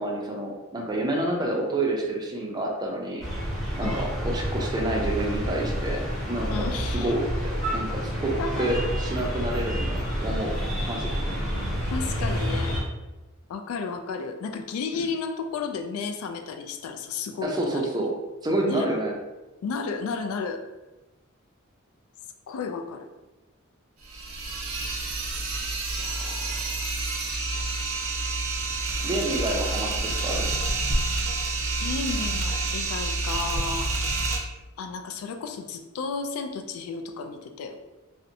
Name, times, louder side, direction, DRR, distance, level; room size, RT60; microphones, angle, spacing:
voice 1, 0.0-3.3 3.8-6.5 6.9-7.2 7.7-10.5 10.9-11.1 14.9-15.0 17.4-18.1 18.4-19.1 29.0-30.5, right 1 dB, 20° right, 0 dB, 0.4 m, -28 dB
sound 1, 3.2-12.8, equal, ahead, 0.7 m, -29 dB
voice 2, 6.5-7.1 8.4-8.7 11.9-12.8 13.5-17.9 18.6-18.9 19.6-20.6 22.5-23.1 26.0-26.8 27.7-27.8 31.8-33.9 34.8-37.8, left 5 dB, 85° left, 6 dB, 0.3 m, -33 dB
sound 2, 24.0-34.4, right 3 dB, 75° right, 0.5 m, -28 dB
2.6 x 2.1 x 2.6 m, 1.1 s
head